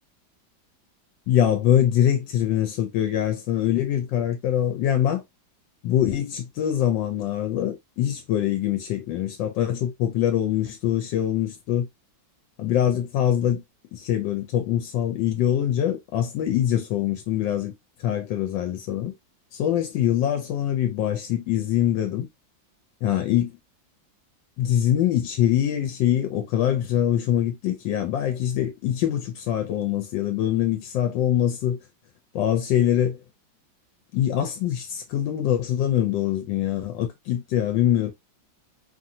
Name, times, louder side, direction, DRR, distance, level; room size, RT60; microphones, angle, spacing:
voice 1, 1.3-5.2 5.8-11.9 12.6-13.6 13.9-17.7 18.0-19.1 19.5-22.3 23.0-23.5 24.6-31.8 32.3-33.2 34.1-38.1, left 11 dB, 80° left, 1.2 m, -23 dB
2.9 x 2.6 x 2.6 m
omnidirectional pair, 2.0 m